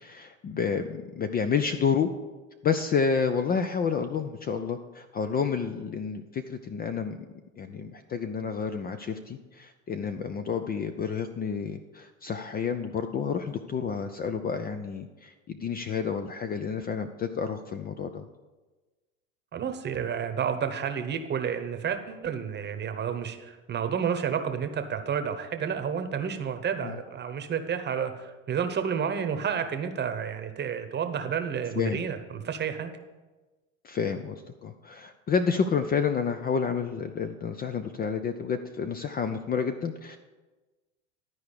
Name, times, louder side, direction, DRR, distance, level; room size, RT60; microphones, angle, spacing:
voice 1, 0.0-2.1 2.6-7.2 7.6-18.2 26.8-26.9 31.8-32.0 33.8-40.2, left 6 dB, 25° left, 8 dB, 0.5 m, -30 dB
voice 2, 19.5-32.9, right 7 dB, 25° right, 7 dB, 1.0 m, -30 dB
12.0 x 4.7 x 6.6 m, 1.2 s
hypercardioid pair, 100°, 38 cm